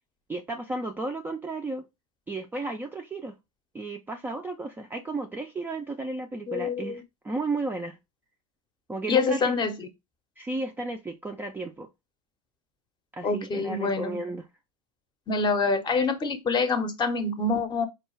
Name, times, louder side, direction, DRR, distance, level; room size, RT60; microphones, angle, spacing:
voice 1, 0.3-1.8 2.3-3.3 3.7-8.0 8.9-9.6 10.4-11.9 13.1-14.5, right 2 dB, 10° right, 0.4 m, -33 dB
voice 2, 6.5-7.0 9.1-9.9 13.2-14.2 15.3-17.9, left 4 dB, 25° left, 0.7 m, -26 dB
4.4 x 2.3 x 3.0 m
hypercardioid pair, 105°, 19 cm